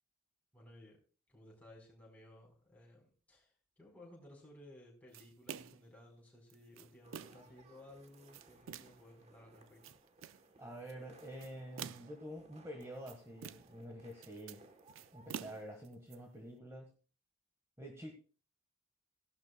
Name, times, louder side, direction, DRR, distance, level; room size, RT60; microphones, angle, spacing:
voice 1, 0.5-1.0 1.3-9.8, left 1 dB, 5° left, -2 dB, 4.4 m, -58 dB
sound 1, 5.1-5.9 6.5-7.5 8.1-9.1 9.6-10.5 11.2-12.2 12.8-13.8 14.1-16.2, right 8 dB, 70° right, 0.4 m, -49 dB
sound 2, 7.0-15.7, right 2 dB, 30° right, 1.1 m, -64 dB
voice 2, 10.6-14.6 15.1-16.9 17.8-18.1, equal, 15° right, 1 dB, 1.4 m, -48 dB
16.5 x 11.5 x 2.3 m, 0.38 s
head